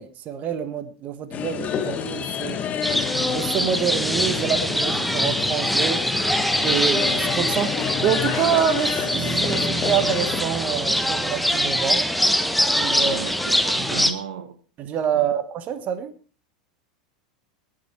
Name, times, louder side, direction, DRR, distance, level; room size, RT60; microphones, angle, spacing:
voice 1, 0.0-2.6 3.3-6.0 6.6-7.7 8.0-12.0 12.8-13.2 14.8-16.1, right 8 dB, 40° right, 10 dB, 1.4 m, -26 dB
sound 1, 1.3-10.4, left 8 dB, 35° left, 1.9 m, -29 dB
sound 2, 2.8-14.1, equal, ahead, 1.3 m, -23 dB
sound 3, 9.1-13.5, right 5 dB, 25° right, 3.7 m, -35 dB
voice 2, 12.9-14.6 15.1-15.3, right 7 dB, 75° right, 11 dB, 1.4 m, -35 dB
19.0 x 7.7 x 4.5 m, 0.38 s
hypercardioid pair, 90°, 4 cm